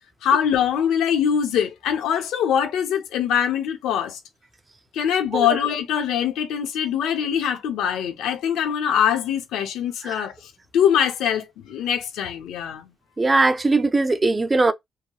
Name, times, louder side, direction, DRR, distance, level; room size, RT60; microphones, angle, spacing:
voice 1, 0.2-4.2 4.9-10.3 10.7-12.9, left 9 dB, 85° left, 0.6 m, -23 dB
voice 2, 13.2-14.7, right 3 dB, 25° right, 0.4 m, -20 dB
2.8 x 2.8 x 2.3 m
cardioid pair, 90°, 0 cm